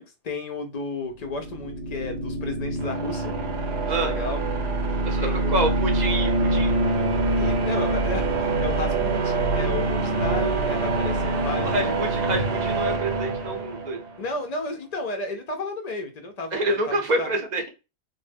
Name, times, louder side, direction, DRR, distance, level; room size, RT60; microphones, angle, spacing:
voice 1, 0.0-3.3 3.8-4.4 5.2-5.6 7.4-12.0 14.2-17.3, left 2 dB, 60° left, 0.4 m, -33 dB
sound 1, 1.2-14.1, right 2 dB, 85° right, 0.9 m, -25 dB
voice 2, 5.0-6.8 11.6-14.0 16.5-17.6, right 1 dB, 50° right, 0.6 m, -27 dB
2.1 x 2.0 x 3.2 m
omnidirectional pair, 1.1 m